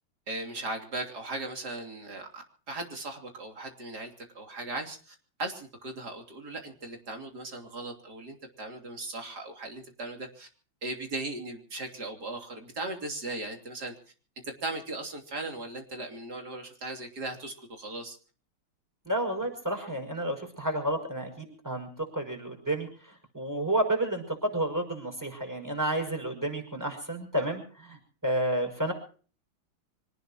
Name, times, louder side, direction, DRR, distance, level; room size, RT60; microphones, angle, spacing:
voice 1, 0.3-10.5 10.8-13.9 14.4-18.2, right 2 dB, 50° right, 4 dB, 3.7 m, -38 dB
voice 2, 19.1-28.9, right 1 dB, 10° right, 3 dB, 6.0 m, -31 dB
26.5 x 18.5 x 2.9 m, 0.42 s
omnidirectional pair, 2.3 m